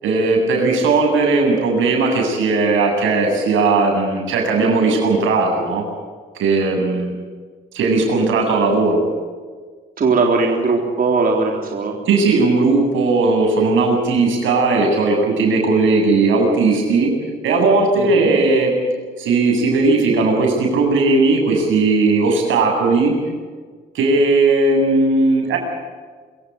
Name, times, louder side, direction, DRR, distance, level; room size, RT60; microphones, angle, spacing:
voice 1, 0.0-5.8 6.3-7.1 7.7-9.0 12.1-17.1 17.4-18.7 19.2-23.1 23.9-25.6, right 3 dB, 80° right, 2 dB, 8.0 m, -17 dB
voice 2, 10.0-12.0 18.0-18.3, right 4 dB, 45° right, 1 dB, 3.8 m, -19 dB
26.0 x 16.0 x 9.5 m, 1.5 s
cardioid pair, 90°, 20 cm